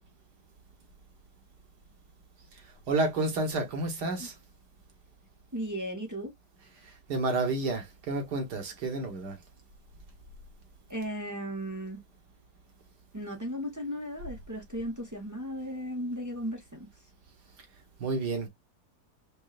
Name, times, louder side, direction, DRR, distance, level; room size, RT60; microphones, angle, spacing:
voice 1, 2.9-4.3 7.1-9.4 18.0-18.5, right 2 dB, 70° right, 1.9 m, -30 dB
voice 2, 5.5-6.3 10.9-12.0 13.1-16.9, equal, 15° right, 0.7 m, -36 dB
5.4 x 2.3 x 2.4 m
omnidirectional pair, 1.9 m